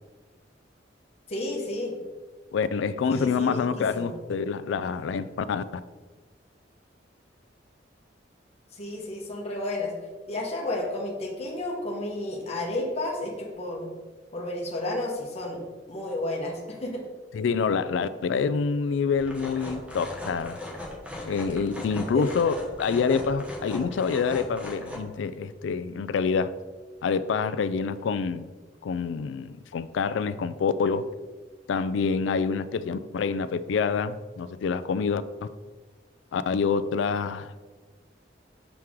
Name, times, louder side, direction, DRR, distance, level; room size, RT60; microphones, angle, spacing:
voice 1, 1.3-1.9 3.1-4.2 8.8-9.9 10.3-13.9 14.3-15.6 15.9-17.0 22.1-22.3, left 1 dB, 35° left, -2 dB, 1.0 m, -32 dB
voice 2, 2.5-5.6 17.3-20.6 21.3-26.5 27.0-28.5 28.8-31.1 31.7-35.2 36.3-37.6, left 5 dB, 75° left, 14 dB, 0.3 m, -27 dB
sound 1, 19.1-25.0, left 1 dB, 5° right, 1.1 m, -38 dB
6.2 x 4.5 x 3.6 m, 1.3 s
head